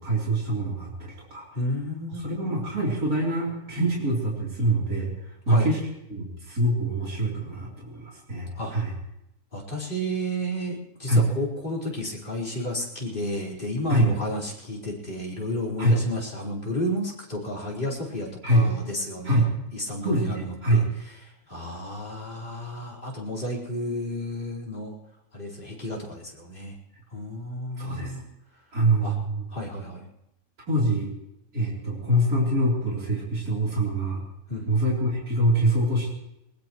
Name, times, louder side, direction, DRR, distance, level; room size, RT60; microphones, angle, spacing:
voice 1, 0.0-1.5 2.2-5.8 6.1-8.9 11.1-11.2 13.9-14.1 15.8-16.0 18.4-18.6 19.2-19.5 20.0-20.9 27.8-28.1 28.7-29.5 30.7-31.1 31.5-34.2 34.7-36.1, right 1 dB, 75° right, -4 dB, 4.2 m, -24 dB
voice 2, 1.5-2.6 5.5-5.7 8.6-8.7 9.5-19.4 19.7-20.8 21.5-25.0 25.3-26.7 27.1-28.2 29.0-29.1 29.5-30.0 34.5-34.6, equal, 35° left, -4 dB, 4.7 m, -32 dB
21.5 x 20.5 x 3.1 m, 0.86 s
omnidirectional pair, 1.6 m